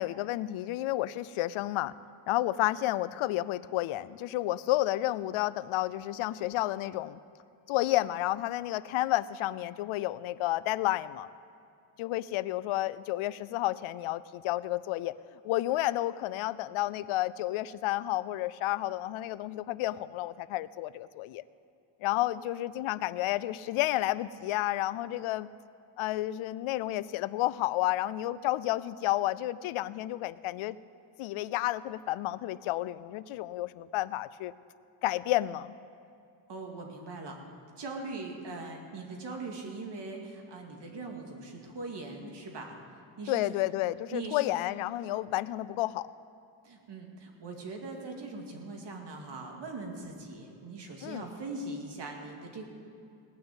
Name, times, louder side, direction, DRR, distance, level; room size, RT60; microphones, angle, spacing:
voice 1, 0.0-1.9 2.3-7.2 7.7-11.3 12.0-15.1 15.4-21.4 22.0-25.5 26.0-30.8 31.2-34.5 35.0-35.8 43.3-46.1 51.0-51.3, left 16 dB, 80° left, 17 dB, 0.5 m, -31 dB
voice 2, 36.5-37.4 37.8-42.7 43.2-43.4 44.1-44.4 46.6-52.6, right 3 dB, 55° right, 2 dB, 2.4 m, -41 dB
18.0 x 6.3 x 9.0 m, 2.5 s
cardioid pair, 90°, 48 cm